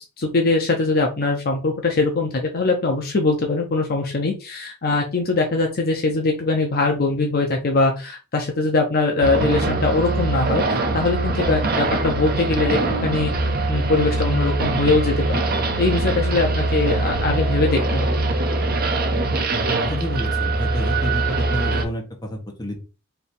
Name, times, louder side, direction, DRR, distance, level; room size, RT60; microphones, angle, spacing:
voice 1, 0.2-13.3 13.7-15.4 15.8-18.1, left 3 dB, 45° left, 2 dB, 0.7 m, -22 dB
sound 1, 9.2-21.8, right 2 dB, 45° right, 0.7 m, -22 dB
voice 2, 19.9-22.8, equal, 20° left, 0 dB, 1.1 m, -29 dB
3.3 x 2.8 x 4.3 m, 0.32 s
head